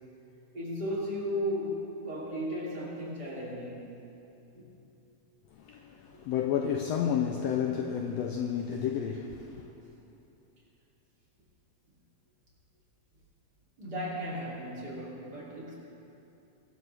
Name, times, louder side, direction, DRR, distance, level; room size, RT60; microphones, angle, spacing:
voice 1, 0.5-4.0 4.5-4.7 9.5-9.9 13.8-15.7, equal, 30° right, 3.6 m, -35 dB
voice 2, 5.6-9.7, left 8 dB, 75° left, 1.6 m, -31 dB
22.5 x 12.5 x 3.5 m
omnidirectional pair, 3.5 m